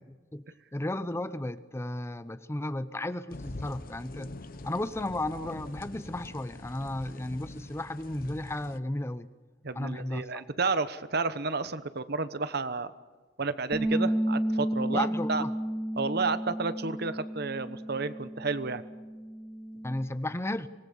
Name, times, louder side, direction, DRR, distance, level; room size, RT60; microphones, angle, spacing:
voice 1, 0.7-4.3 4.6-9.3 9.7-10.4 14.9-15.5 19.8-20.7, left 1 dB, 15° left, 0.7 m, -34 dB
sound 1, 3.3-8.8, left 2 dB, 50° left, 0.9 m, -44 dB
voice 2, 9.6-12.9 13.4-15.4 16.0-18.8, right 4 dB, 60° right, 1.1 m, -31 dB
Bass guitar, 13.7-20.0, right 1 dB, 10° right, 3.1 m, -32 dB
25.5 x 19.5 x 7.2 m
head